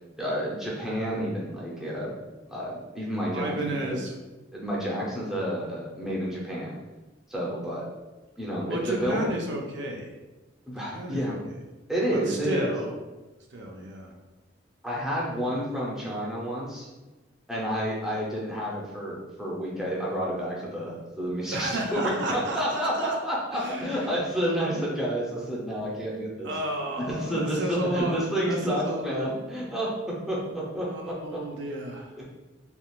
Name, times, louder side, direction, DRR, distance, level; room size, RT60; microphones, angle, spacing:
voice 1, 0.2-2.1 2.5-4.0 4.5-6.8 7.3-7.9 8.4-9.2 10.7-11.4 11.9-12.7 14.8-16.9 17.5-26.5 27.0-29.9 30.3-31.4, equal, ahead, -6 dB, 0.7 m, -30 dB
voice 2, 3.3-4.1 8.7-10.1 10.9-11.4 12.1-13.0 13.5-14.1 21.5-23.2 23.5-24.1 26.4-29.3 30.9-32.1, right 1 dB, 65° right, 0 dB, 0.5 m, -32 dB
3.6 x 2.3 x 2.4 m, 1.1 s
head